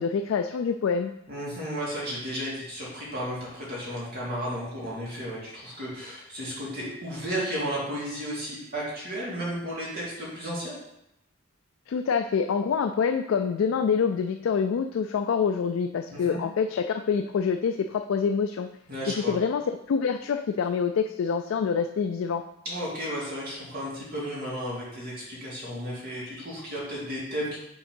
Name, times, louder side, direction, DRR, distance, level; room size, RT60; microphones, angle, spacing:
voice 1, 0.0-1.1 11.9-18.7 19.1-22.4, left 6 dB, 80° left, 7 dB, 0.3 m, -26 dB
voice 2, 1.3-10.8 16.1-16.4 18.9-19.3 22.6-27.6, equal, 50° right, -7 dB, 2.5 m, -33 dB
6.2 x 3.8 x 5.3 m, 0.83 s
head